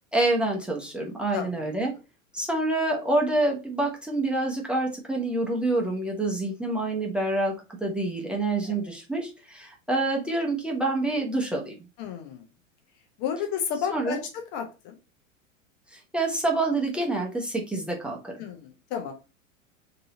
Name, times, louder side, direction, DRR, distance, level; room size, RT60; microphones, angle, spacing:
voice 1, 0.1-1.9 2.3-7.5 7.8-11.7 13.9-14.2 15.9-18.3, right 2 dB, 5° right, 0 dB, 0.9 m, -27 dB
voice 2, 1.3-1.7 8.6-8.8 12.0-12.4 13.2-14.9 18.4-19.1, left 7 dB, 40° left, 4 dB, 0.9 m, -32 dB
3.9 x 2.8 x 3.6 m, 0.29 s
figure-of-eight pair, 90°, 40 cm